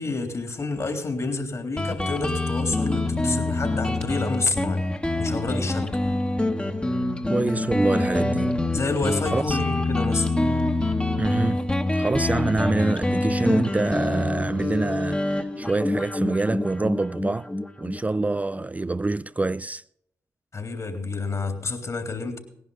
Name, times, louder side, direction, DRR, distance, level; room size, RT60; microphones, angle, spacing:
voice 1, 0.0-4.8 5.2-6.0 8.7-10.3 20.5-22.4, left 3 dB, 45° left, 3.6 m, -29 dB
Guitar, 1.8-19.0, left 2 dB, 15° left, 1.7 m, -26 dB
voice 2, 7.3-8.6 9.3-9.6 11.2-11.6 11.9-17.5 17.8-19.8, right 2 dB, 20° right, 0.4 m, -26 dB
18.5 x 11.0 x 4.1 m
hypercardioid pair, 40°, 7 cm